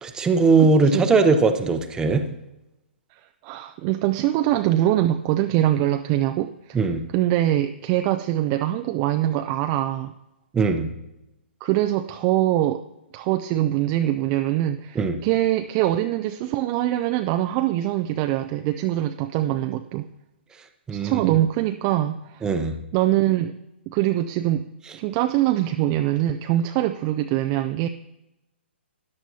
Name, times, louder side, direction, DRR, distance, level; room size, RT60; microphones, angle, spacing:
voice 1, 0.0-2.2 6.7-7.0 10.5-10.9 15.0-15.2 20.9-21.2 22.4-22.7, right 4 dB, 10° right, 7 dB, 0.7 m, -19 dB
voice 2, 0.6-1.0 3.1-6.8 7.1-10.1 11.6-12.8 13.1-20.1 20.9-22.5 22.9-23.5 23.9-24.7 24.9-27.9, right 13 dB, 30° right, 8 dB, 0.3 m, -23 dB
13.0 x 9.7 x 2.8 m, 0.94 s
hypercardioid pair, 140°, 6 cm